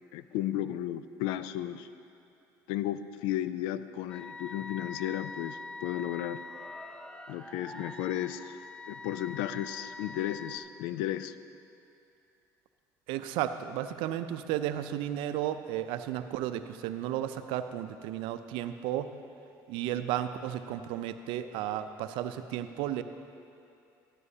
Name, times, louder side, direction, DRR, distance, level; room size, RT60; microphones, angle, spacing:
voice 1, 0.1-1.9 2.7-6.4 7.3-8.6 8.9-11.4, left 12 dB, 75° left, 13 dB, 0.4 m, -34 dB
sound 1, 4.1-10.6, left 3 dB, 10° left, 0.7 m, -44 dB
voice 2, 13.1-19.1 19.7-23.0, right 11 dB, 70° right, 10 dB, 0.5 m, -33 dB
13.0 x 12.5 x 2.8 m, 2.6 s
hypercardioid pair, 75°, 9 cm